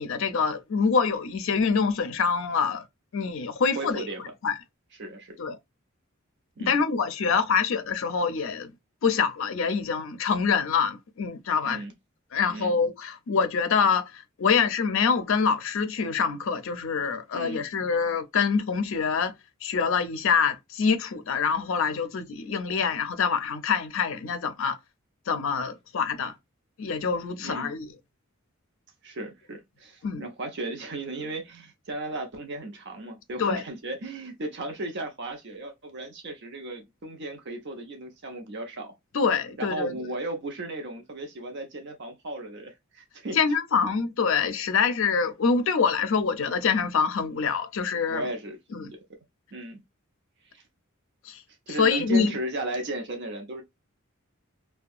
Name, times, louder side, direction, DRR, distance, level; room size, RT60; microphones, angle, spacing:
voice 1, 0.0-2.8 3.1-4.0 4.4-4.5 5.4-5.6 6.7-8.7 9.0-11.8 12.3-19.3 19.6-24.8 25.3-26.3 26.8-27.9 30.0-30.3 33.4-33.6 39.1-39.9 43.3-48.2 48.7-48.9 51.2-51.4 51.8-52.3, left 5 dB, 65° left, 0.5 m, -25 dB
voice 2, 3.7-4.2 5.0-5.4 6.6-6.8 11.6-11.9 12.5-12.7 17.3-17.6 27.4-27.7 29.0-39.0 39.6-43.4 48.1-48.6 49.5-49.8 50.5-50.6 51.7-53.6, right 2 dB, 55° right, 0.6 m, -35 dB
2.7 x 2.2 x 2.3 m
head